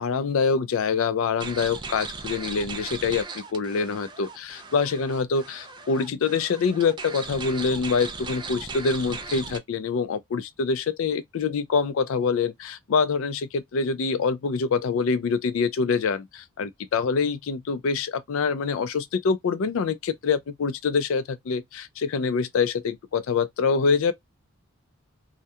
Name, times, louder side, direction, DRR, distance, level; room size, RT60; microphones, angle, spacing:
voice 1, 0.0-24.1, left 5 dB, 65° left, 0.4 m, -25 dB
sound 1, 1.4-9.6, right 4 dB, 20° right, 0.4 m, -38 dB
2.3 x 2.1 x 2.6 m
head